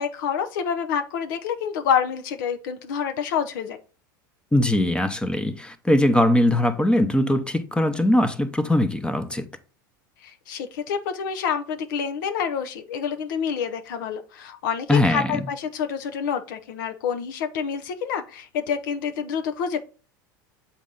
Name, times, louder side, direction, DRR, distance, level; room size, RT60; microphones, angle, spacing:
voice 1, 0.0-3.8 10.2-19.8, left 7 dB, 70° left, 0.8 m, -27 dB
voice 2, 4.5-9.4 14.9-15.4, left 1 dB, 10° left, 0.9 m, -21 dB
7.2 x 4.3 x 3.9 m
hypercardioid pair, 95°, 11 cm